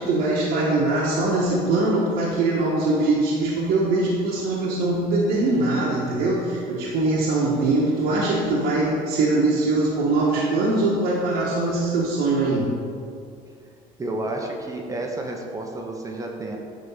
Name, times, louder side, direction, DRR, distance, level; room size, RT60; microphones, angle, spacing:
voice 1, 0.0-12.8, right 2 dB, 85° right, -5 dB, 1.3 m, -22 dB
voice 2, 14.0-16.6, right 2 dB, 20° right, 1 dB, 0.8 m, -30 dB
9.5 x 3.6 x 5.5 m, 2.3 s
cardioid pair, 130°, 16 cm